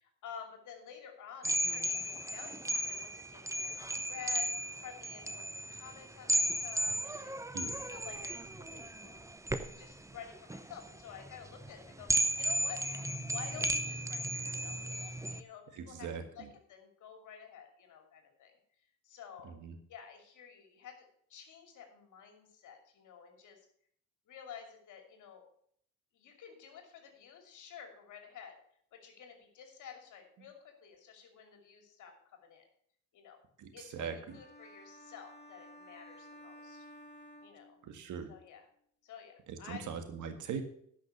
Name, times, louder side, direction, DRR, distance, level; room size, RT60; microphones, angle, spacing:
voice 1, 0.0-7.4 7.9-9.2 9.5-12.1 12.4-12.8 13.3-16.1 16.4-18.5 19.0-19.5 19.9-21.0 21.3-23.6 24.3-25.4 26.1-28.6 28.9-32.6 33.1-33.4 33.7-36.9 37.4-37.8 38.3-38.6 39.0-39.9, left 8 dB, 80° left, 4 dB, 2.7 m, -51 dB
sound 1, 1.4-15.4, right 1 dB, 10° right, 0.7 m, -35 dB
voice 2, 15.7-16.5 19.4-19.8 33.6-34.4 37.8-38.3 39.5-40.6, right 6 dB, 75° right, 7 dB, 1.8 m, -41 dB
sound 2, 34.3-38.2, equal, 35° left, 2.3 m, -54 dB
11.0 x 6.1 x 6.7 m, 0.66 s
cardioid pair, 90°, 30 cm